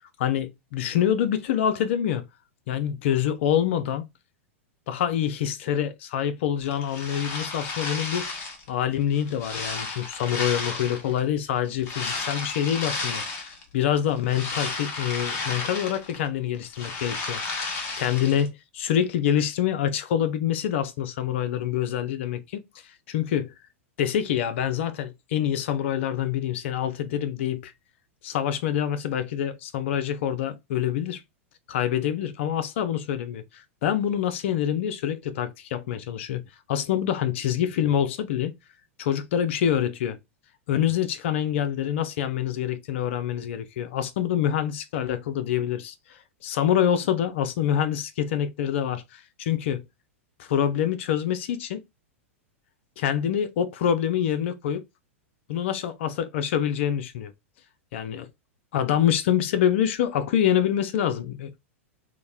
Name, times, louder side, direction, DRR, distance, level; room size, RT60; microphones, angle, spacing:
voice 1, 0.2-2.2 2.7-4.0 4.9-8.4 8.7-22.6 23.1-23.5 24.0-27.7 28.2-31.2 31.7-36.4 36.7-38.5 39.0-40.2 40.7-45.9 46.4-49.8 50.4-51.8 53.0-54.8 55.5-57.3 57.9-58.3 58.7-61.6, left 10 dB, 60° left, 0.5 m, -26 dB
sound 1, 6.6-8.7 9.1-11.2 11.8-13.6 14.0-16.3 16.5-18.5, left 3 dB, 35° left, 0.9 m, -33 dB
2.8 x 2.1 x 2.3 m
hypercardioid pair, 100°, 7 cm